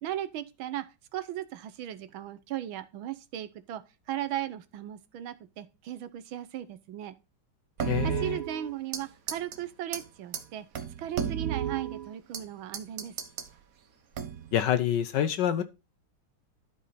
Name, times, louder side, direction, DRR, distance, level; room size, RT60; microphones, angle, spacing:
voice 1, 0.0-0.8 1.1-3.8 4.1-7.1 8.0-10.7 11.0-13.1, right 12 dB, 75° right, 1.5 m, -37 dB
voice 2, 7.8-8.4 14.5-15.6, left 10 dB, 70° left, 1.2 m, -27 dB
sound 1, 7.8-9.0 9.3-9.6 9.9-10.0 10.3-10.4 10.7-12.4 12.7-13.5 14.1-14.6, right 8 dB, 50° right, 1.2 m, -33 dB
12.0 x 5.2 x 4.1 m
omnidirectional pair, 2.3 m